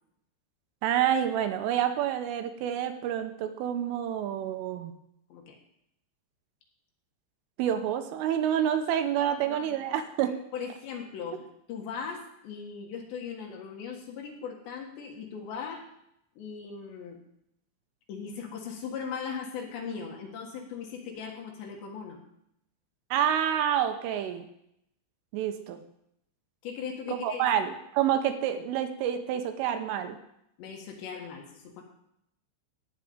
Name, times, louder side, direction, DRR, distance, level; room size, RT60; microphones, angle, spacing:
voice 1, 0.8-4.9 7.6-10.3 23.1-24.5 25.3-25.8 27.1-30.2, right 10 dB, 80° right, 8 dB, 3.4 m, -28 dB
voice 2, 9.2-9.8 10.3-15.8 16.4-17.2 18.1-22.2 26.6-27.5 30.6-31.8, left 6 dB, 65° left, 1 dB, 3.6 m, -39 dB
15.0 x 5.0 x 9.4 m, 0.76 s
omnidirectional pair, 5.8 m